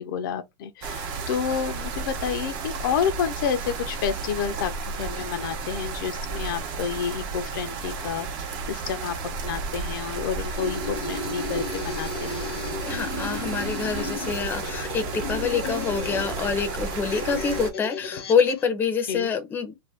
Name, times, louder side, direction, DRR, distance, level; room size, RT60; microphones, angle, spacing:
voice 1, 0.0-9.2 9.4-12.5 19.1-19.3, left 7 dB, 60° left, 0.5 m, -30 dB
sound 1, 0.8-17.7, right 4 dB, 40° right, 0.8 m, -33 dB
sound 2, 10.4-18.6, left 4 dB, 90° left, 0.8 m, -34 dB
voice 2, 12.8-19.7, left 6 dB, 15° left, 0.6 m, -26 dB
2.5 x 2.2 x 3.3 m
supercardioid pair, 140°, 12 cm